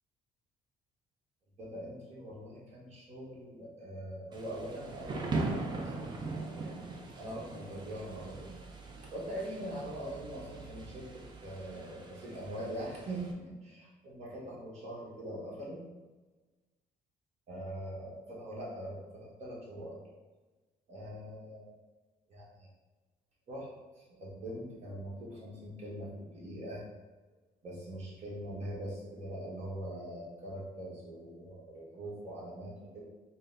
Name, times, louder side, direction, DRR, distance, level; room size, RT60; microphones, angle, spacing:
voice 1, 1.6-8.5 9.1-15.8 17.5-20.0 20.9-21.8 22.3-22.7 23.5-23.7 23.9-26.8 27.6-33.0, right 1 dB, 45° right, -5 dB, 1.3 m, -42 dB
Thunder / Rain, 4.3-13.3, right 3 dB, 30° right, 0.5 m, -41 dB
3.8 x 2.2 x 3.8 m, 1.2 s
cardioid pair, 140°, 15 cm